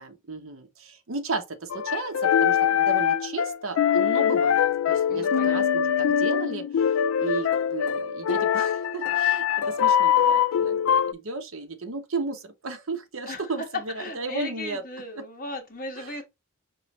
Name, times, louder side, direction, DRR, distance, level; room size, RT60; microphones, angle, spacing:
voice 1, 0.0-4.6 4.9-14.8 15.2-15.3 16.0-16.2, right 3 dB, 70° right, 0.9 m, -34 dB
sound 1, 1.7-11.1, left 8 dB, 80° left, 0.3 m, -23 dB
voice 2, 5.1-5.8 13.3-13.4 14.0-16.2, left 1 dB, 45° left, 1.4 m, -37 dB
4.8 x 3.0 x 3.0 m
head